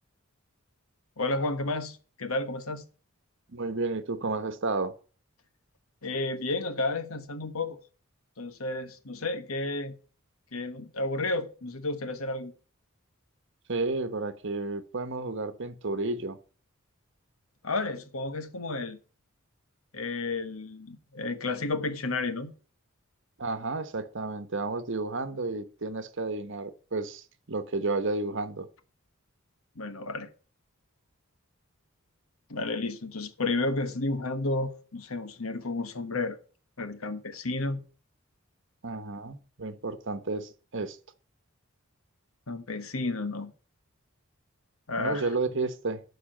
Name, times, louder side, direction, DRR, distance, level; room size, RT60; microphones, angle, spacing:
voice 1, 1.2-2.8 6.0-7.8 8.4-9.9 10.5-12.5 17.6-19.0 19.9-22.5 29.7-30.3 32.5-36.4 36.8-37.8 42.5-43.5 44.9-45.3, left 2 dB, 80° left, 1.3 m, -32 dB
voice 2, 3.5-4.9 13.7-16.4 23.4-28.7 38.8-41.0 45.0-46.0, right 3 dB, 60° right, 1.1 m, -32 dB
12.0 x 4.9 x 7.7 m
head